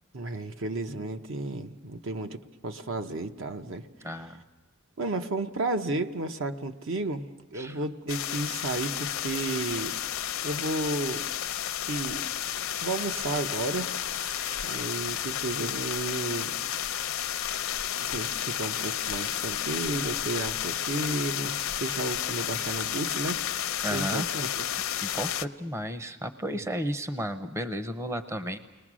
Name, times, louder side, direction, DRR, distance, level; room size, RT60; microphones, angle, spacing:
voice 1, 0.1-2.4 2.6-3.9 5.0-7.3 7.5-9.9 10.4-11.3 11.7-12.2 12.8-13.9 14.6-16.5 18.0-23.4 23.9-24.6, right 2 dB, 65° right, 7 dB, 0.9 m, -32 dB
voice 2, 4.0-4.4 7.5-7.8 23.8-24.3 25.0-28.6, equal, 15° right, 9 dB, 0.6 m, -33 dB
sound 1, 8.1-25.5, left 10 dB, 70° left, 0.6 m, -32 dB
sound 2, 13.6-14.8 19.6-19.7, right 2 dB, 90° right, 2.9 m, -48 dB
29.5 x 20.5 x 6.2 m, 1.3 s
head